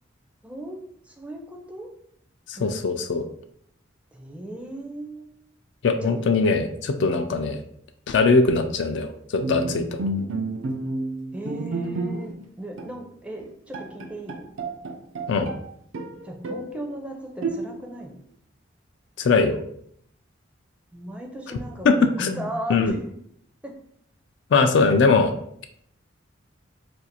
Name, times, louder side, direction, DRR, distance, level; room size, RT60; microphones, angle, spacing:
voice 1, 0.4-1.9 2.6-2.8 4.1-5.4 6.0-6.2 11.3-14.5 16.2-18.2 20.9-23.0 23.6-23.7, right 1 dB, 5° right, 1 dB, 0.4 m, -37 dB
voice 2, 2.5-3.2 5.8-7.6 8.1-9.9 15.3-15.5 19.2-19.6 21.8-22.9 24.5-25.3, left 4 dB, 60° left, 7 dB, 0.3 m, -21 dB
Bowed string instrument, 9.4-12.5 12.8-13.0 13.4-13.5 13.7-15.6 15.9-16.8 17.4-18.0, right 2 dB, 80° right, 0.4 m, -30 dB
2.6 x 2.3 x 4.1 m, 0.68 s
head